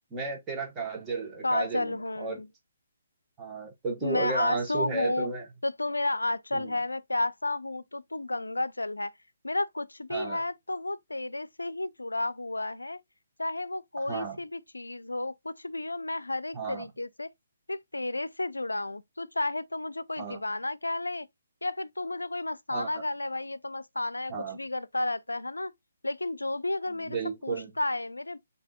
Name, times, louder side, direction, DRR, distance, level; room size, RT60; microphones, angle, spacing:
voice 1, 0.1-2.4 3.4-5.4 6.5-6.8 10.1-10.4 14.1-14.4 16.5-16.8 20.2-20.4 22.7-22.9 24.3-24.6 26.9-27.7, right 4 dB, 15° right, 1.2 m, -33 dB
voice 2, 1.4-2.5 4.0-5.3 5.6-9.1 9.4-13.0 13.4-17.3 17.7-21.3 21.6-25.7 26.0-28.4, left 2 dB, 90° left, 0.4 m, -32 dB
7.2 x 2.7 x 2.3 m
figure-of-eight pair, 140°, 0 cm